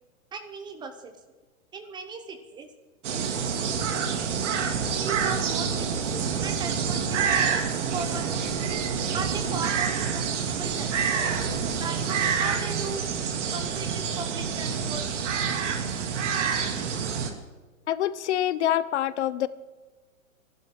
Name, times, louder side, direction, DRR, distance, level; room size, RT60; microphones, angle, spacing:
voice 1, 0.3-1.2 1.7-2.7 3.1-3.3 5.0-7.5 7.9-8.7 9.1-11.4 11.8-13.1 13.5-15.1, right 4 dB, 10° right, 8 dB, 0.7 m, -37 dB
sound 1, 3.0-17.3, right 6 dB, 60° right, 2.5 m, -27 dB
Wind instrument woodwind instrument, 5.9-10.9, right 6 dB, 85° right, 2.8 m, -44 dB
voice 2, 17.9-19.5, left 12 dB, 55° left, 17 dB, 0.8 m, -26 dB
29.5 x 12.0 x 3.8 m, 1.3 s
hypercardioid pair, 150°, 41 cm